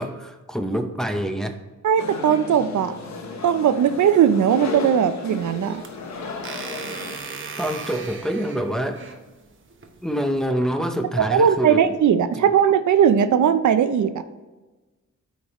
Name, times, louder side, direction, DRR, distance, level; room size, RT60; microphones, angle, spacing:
voice 1, 0.0-1.6 7.6-9.2 10.0-11.9 12.4-12.5, equal, ahead, 4 dB, 0.7 m, -26 dB
voice 2, 1.8-2.9 3.4-5.8 11.2-14.2, right 8 dB, 75° right, 11 dB, 0.5 m, -19 dB
Car Dealership Waiting Room Ambience, 2.0-7.2, left 3 dB, 65° left, 1.2 m, -34 dB
sound 1, 5.3-10.5, right 4 dB, 40° right, 0.9 m, -38 dB
12.5 x 5.2 x 3.0 m, 1.2 s
wide cardioid pair, 110°, 30 cm